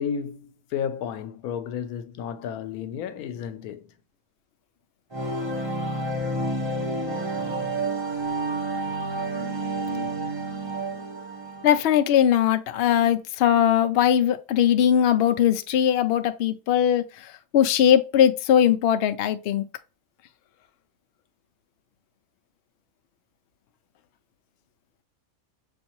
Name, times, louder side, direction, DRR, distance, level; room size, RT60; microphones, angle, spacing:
voice 1, 0.0-3.9, left 8 dB, 90° left, 1.1 m, -32 dB
sound 1, 5.1-12.0, right 2 dB, 20° right, 1.0 m, -29 dB
voice 2, 11.6-17.0 17.5-19.6, left 9 dB, 70° left, 0.6 m, -20 dB
6.3 x 2.6 x 2.9 m
omnidirectional pair, 1.5 m